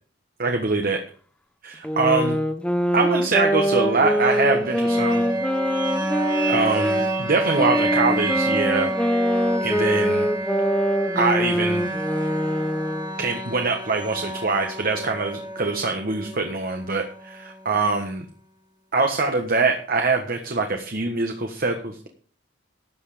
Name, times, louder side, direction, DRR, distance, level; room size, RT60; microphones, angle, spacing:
voice 1, 0.4-1.0 1.6-2.4 2.9-5.2 6.5-8.9 9.3-10.3 11.1-11.9 13.2-18.2 18.9-22.0, right 3 dB, 50° right, 4 dB, 1.5 m, -24 dB
sound 1, 1.8-7.1 7.6-13.2, equal, 5° left, 1.1 m, -24 dB
sound 2, 3.8-17.8, right 2 dB, 25° right, 2.2 m, -29 dB
13.0 x 8.3 x 5.0 m, 0.43 s
head